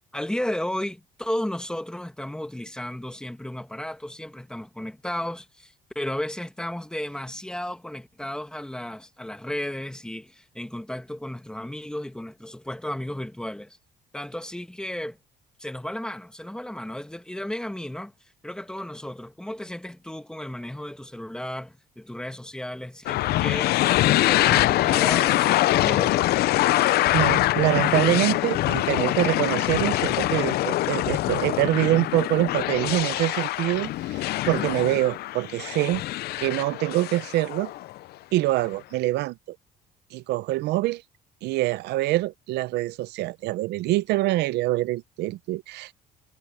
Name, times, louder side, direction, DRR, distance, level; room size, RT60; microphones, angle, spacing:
voice 1, 0.1-13.8 14.1-15.2 15.6-18.1 18.4-26.2, left 1 dB, 5° left, 1.8 m, -34 dB
sound 1, 23.1-38.0, left 16 dB, 70° left, 0.6 m, -24 dB
voice 2, 26.6-36.0 36.4-37.7 38.3-39.6 40.1-41.0 41.4-45.9, right 17 dB, 80° right, 0.6 m, -25 dB
cardioid pair, 110°, 17 cm